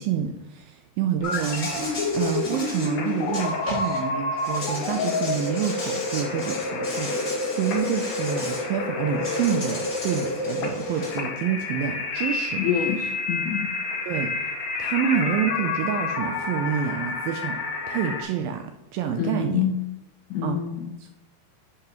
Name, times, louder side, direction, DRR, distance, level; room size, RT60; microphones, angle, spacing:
voice 1, 0.0-12.6 14.1-14.3 14.8-19.6 20.4-20.6 21.0-21.1, right 8 dB, 80° right, 5 dB, 2.1 m, -28 dB
sound 1, 1.2-18.2, left 3 dB, 50° left, 2.5 m, -29 dB
Insect, 1.2-4.0 4.4-8.6 9.2-11.2, left 1 dB, 20° left, 2.5 m, -36 dB
voice 2, 12.6-13.7 19.2-19.8 20.3-20.9, left 8 dB, 85° left, 3 dB, 1.9 m, -26 dB
10.5 x 7.9 x 3.0 m, 1.0 s
omnidirectional pair, 4.7 m